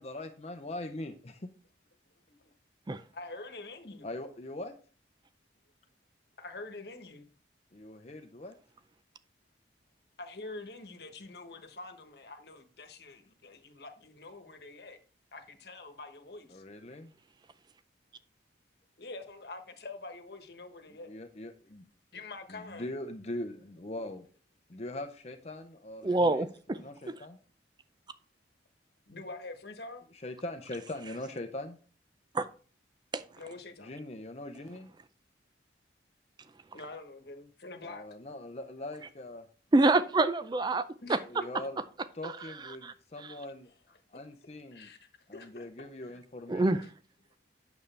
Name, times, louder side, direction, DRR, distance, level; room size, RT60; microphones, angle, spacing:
voice 1, 0.0-1.5 4.0-4.7 7.7-8.5 16.5-17.1 20.9-21.8 22.5-24.3 24.7-27.4 30.1-31.8 33.8-34.9 37.8-39.5 41.2-41.8 42.1-43.7 44.1-44.9 45.3-46.9, left 1 dB, 35° left, 0.7 m, -41 dB
voice 2, 3.1-4.1 6.4-7.3 10.2-15.0 15.3-16.6 19.0-21.1 22.1-22.9 29.1-30.0 33.4-33.9 36.7-38.0 41.0-41.5 44.7-45.0 45.3-45.7 46.1-46.2, left 3 dB, 60° left, 1.2 m, -45 dB
voice 3, 26.0-26.8 32.3-32.4 33.1-33.2 39.7-41.2 42.8-42.9 46.5-46.8, right 2 dB, 25° right, 0.4 m, -26 dB
8.9 x 7.0 x 3.3 m
head